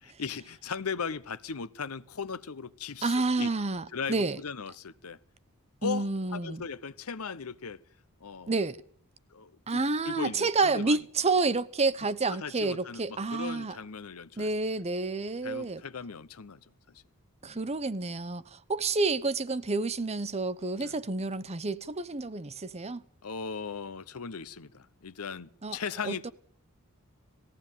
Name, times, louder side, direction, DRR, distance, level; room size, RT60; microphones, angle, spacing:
voice 1, 0.0-3.5 3.9-5.2 5.8-7.8 8.2-8.5 9.3-11.0 12.3-14.5 15.4-16.6 17.4-17.6 20.7-20.9 23.2-26.3, left 5 dB, 85° left, 0.9 m, -38 dB
voice 2, 3.0-4.4 5.8-6.6 8.5-8.8 9.7-13.8 14.4-15.8 17.4-23.0 25.6-25.8 26.0-26.3, right 3 dB, 30° right, 0.8 m, -29 dB
19.5 x 15.5 x 9.1 m
head